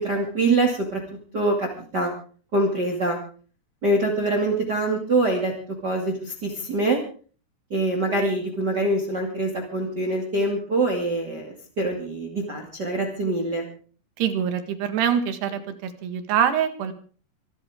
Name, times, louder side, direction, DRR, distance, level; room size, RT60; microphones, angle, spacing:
voice 1, 0.0-2.1 2.5-3.2 3.8-7.0 7.7-13.7, right 2 dB, 30° right, 2 dB, 2.4 m, -24 dB
voice 2, 14.2-16.9, right 8 dB, 80° right, 9 dB, 3.8 m, -24 dB
26.0 x 13.0 x 3.7 m, 0.41 s
omnidirectional pair, 4.7 m